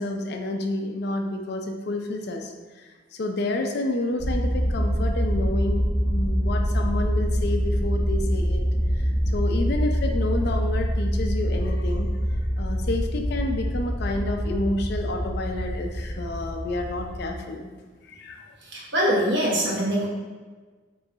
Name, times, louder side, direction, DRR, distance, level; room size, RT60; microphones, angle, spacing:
voice 1, 0.0-2.5 3.1-8.6 9.3-12.1 12.6-17.7 18.1-18.5, left 2 dB, 55° left, 4 dB, 0.4 m, -29 dB
sound 1, 4.2-17.4, equal, 10° left, 1.5 m, -25 dB
voice 2, 18.6-20.1, equal, 65° right, -5 dB, 1.2 m, -23 dB
3.5 x 3.1 x 3.8 m, 1.4 s
head